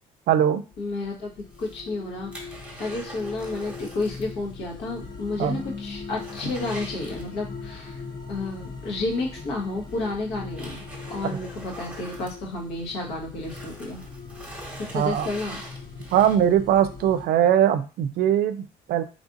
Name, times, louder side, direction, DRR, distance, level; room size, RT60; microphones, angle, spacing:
voice 1, 0.3-0.6 5.4-5.6 14.9-15.3 16.1-19.0, right 10 dB, 65° right, 12 dB, 0.5 m, -21 dB
sound 1, 0.7-17.3, left 4 dB, 25° left, 0.5 m, -41 dB
voice 2, 0.8-1.3 1.6-8.0 8.3-14.0 14.9-15.6, left 2 dB, 80° left, -1 dB, 1.3 m, -31 dB
sound 2, 1.4-4.4 4.6-4.7 5.2-5.3 5.7-7.7 9.1-9.2 9.9-13.0 13.3-16.7 17.2-17.3, right 1 dB, 10° right, 1.1 m, -43 dB
sound 3, 5.0-11.2, left 3 dB, 60° left, 1.2 m, -43 dB
3.3 x 2.5 x 3.8 m, 0.33 s
cardioid pair, 110°, 17 cm